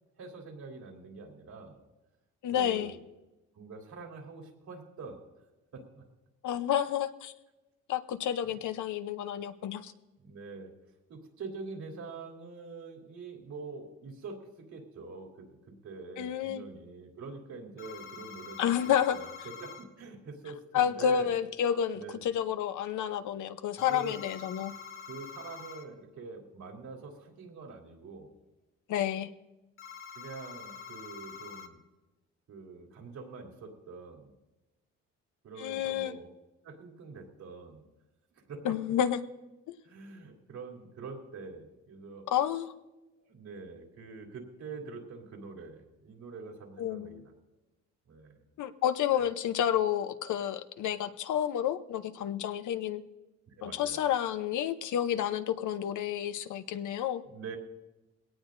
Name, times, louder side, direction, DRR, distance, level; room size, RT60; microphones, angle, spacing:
voice 1, 0.2-1.8 2.5-3.0 3.5-5.2 5.7-6.0 8.4-8.6 10.2-10.7 11.1-18.8 19.1-19.3 19.6-21.3 21.9-22.2 23.8-24.2 25.1-28.3 30.1-31.8 32.5-34.3 35.4-36.3 36.6-37.8 38.5-38.9 39.8-42.3 43.2-47.3 48.1-48.4 49.1-49.3 53.5-54.1 57.3-57.6, right 4 dB, 70° right, 1 dB, 3.3 m, -45 dB
voice 2, 2.4-2.9 6.4-7.3 7.9-9.9 16.2-16.6 18.6-19.2 20.7-24.7 28.9-29.3 35.6-36.2 38.6-39.2 42.3-42.7 46.8-47.2 48.6-53.0 53.6-57.2, left 10 dB, 75° left, 10 dB, 0.9 m, -30 dB
sound 1, 17.8-19.8 23.8-25.8 29.8-31.7, left 6 dB, 45° left, 2.3 m, -46 dB
20.5 x 18.0 x 2.6 m, 1.0 s
cardioid pair, 90°, 30 cm